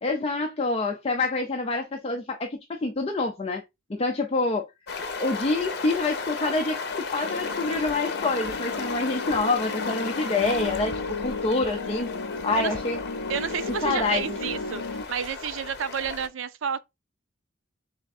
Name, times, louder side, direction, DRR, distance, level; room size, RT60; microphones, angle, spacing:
voice 1, 0.0-3.6 3.9-4.6 5.2-10.9 11.2-12.1 12.4-13.0 13.8-14.4, left 3 dB, 30° left, 0.5 m, -27 dB
sound 1, 4.9-16.3, left 4 dB, 55° left, 0.8 m, -34 dB
sound 2, 7.2-15.0, left 3 dB, 85° left, 0.4 m, -34 dB
voice 2, 13.3-16.8, right 7 dB, 85° right, 0.5 m, -30 dB
3.5 x 3.4 x 4.1 m
head